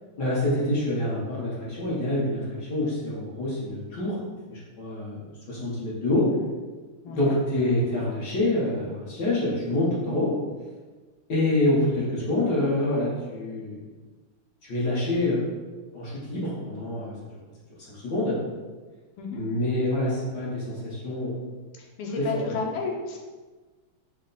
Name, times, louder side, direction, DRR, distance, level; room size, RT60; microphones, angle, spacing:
voice 1, 0.2-4.2 4.5-5.2 5.5-6.3 7.0-10.3 11.3-13.8 14.6-15.4 15.9-17.1 17.9-18.4 19.3-21.3 22.2-22.5, left 1 dB, 55° left, -6 dB, 1.4 m, -26 dB
voice 2, 7.0-7.3 19.2-19.4 21.8-23.2, left 4 dB, 90° left, 0 dB, 1.6 m, -32 dB
5.4 x 2.1 x 3.9 m, 1.3 s
omnidirectional pair, 2.4 m